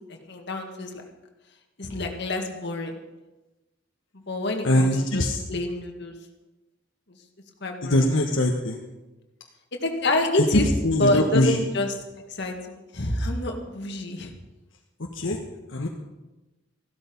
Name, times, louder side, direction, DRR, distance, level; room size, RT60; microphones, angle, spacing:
voice 1, 0.1-1.0 1.8-2.9 4.3-6.1 7.6-8.1 9.7-12.0 12.3-14.3, left 1 dB, 60° left, 3 dB, 2.0 m, -27 dB
voice 2, 4.6-5.4 7.9-8.8 10.8-11.5 15.2-15.4 15.7-15.9, left 1 dB, 75° left, 0 dB, 1.3 m, -22 dB
15.0 x 12.5 x 5.4 m, 1.1 s
head